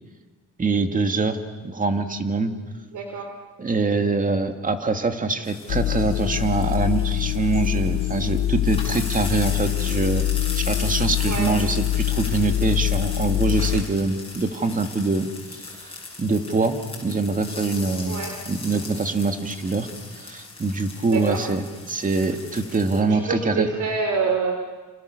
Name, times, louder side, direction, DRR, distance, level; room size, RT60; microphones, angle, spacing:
voice 1, 0.6-1.4 1.6-2.5 3.6-10.2 10.6-15.3 15.5-19.9 20.2-23.7, right 3 dB, 25° right, 6 dB, 2.3 m, -24 dB
voice 2, 2.9-3.3 11.2-11.5 18.1-18.3 21.1-21.4 23.0-24.6, right 5 dB, 65° right, 3 dB, 3.6 m, -26 dB
sound 1, 5.4-23.0, left 3 dB, 15° left, 7.3 m, -38 dB
sound 2, 5.7-13.8, left 13 dB, 70° left, 1.1 m, -24 dB
29.5 x 29.0 x 6.7 m, 1.3 s
cardioid pair, 125°, 33 cm